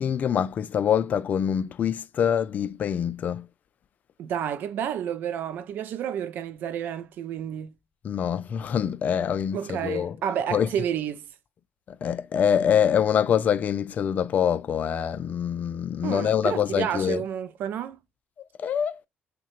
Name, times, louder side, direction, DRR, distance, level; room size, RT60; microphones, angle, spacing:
voice 1, 0.0-3.5 8.0-10.2 10.5-10.7 12.0-17.2 18.6-19.0, left 8 dB, 50° left, 0.3 m, -25 dB
voice 2, 4.2-7.7 9.5-11.3 16.0-18.0, right 9 dB, 65° right, 0.4 m, -30 dB
3.6 x 2.1 x 2.9 m
cardioid pair, 90°, 4 cm